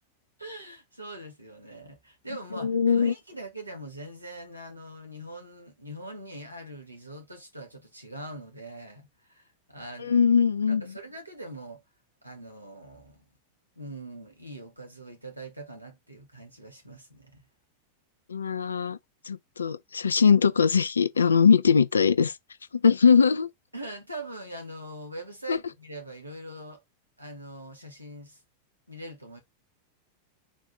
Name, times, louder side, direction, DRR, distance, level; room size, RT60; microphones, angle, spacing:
voice 1, 0.4-10.2 10.7-11.8 12.2-13.2 13.8-17.5 23.7-26.8 27.2-28.4 28.9-29.4, right 1 dB, 85° right, 1.6 m, -42 dB
voice 2, 2.5-3.1 10.0-10.8 18.3-19.0 19.3-22.3 22.7-23.5 25.5-25.6, left 6 dB, 75° left, 0.4 m, -21 dB
4.1 x 2.6 x 4.5 m
figure-of-eight pair, 90°, 0 cm